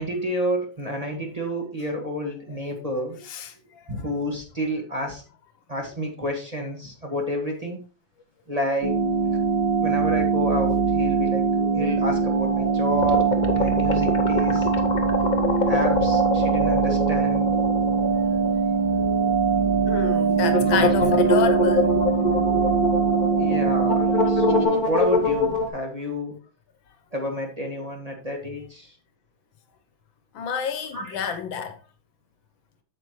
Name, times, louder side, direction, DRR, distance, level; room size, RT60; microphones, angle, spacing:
voice 1, 0.0-3.2 3.9-5.2 5.7-7.8 8.5-9.0 9.8-11.5 11.7-14.7 15.7-17.5 23.4-26.3 27.1-28.9 30.9-31.2, equal, 20° right, 1.4 m, -29 dB
voice 2, 3.2-4.1 11.2-11.3 19.9-21.9 30.3-31.8, left 7 dB, 80° left, 1.7 m, -29 dB
sound 1, 8.8-24.7, right 5 dB, 55° right, 1.4 m, -22 dB
sound 2, 13.0-18.8 19.0-19.1 20.4-25.7, left 2 dB, 55° left, 0.5 m, -25 dB
sound 3, 15.0-25.8, right 2 dB, 80° right, 4.4 m, -40 dB
8.3 x 7.3 x 3.1 m
omnidirectional pair, 2.1 m